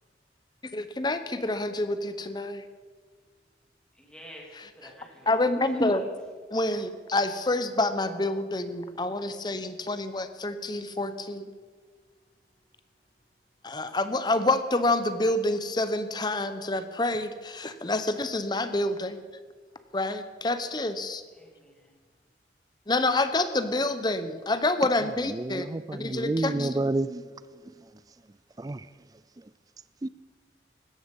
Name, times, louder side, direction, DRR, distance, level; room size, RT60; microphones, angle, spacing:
voice 1, 0.7-2.6 4.6-4.9 5.3-6.1 6.5-11.5 13.6-19.2 19.9-21.2 22.9-25.7 26.0-26.7, left 2 dB, 25° left, 0.8 m, -28 dB
voice 2, 3.9-5.4 5.7-6.0 21.4-21.9, equal, 5° left, 3.2 m, -49 dB
voice 3, 25.3-27.2 28.6-28.8 30.0-30.1, right 2 dB, 20° right, 0.4 m, -29 dB
16.5 x 13.0 x 5.3 m
head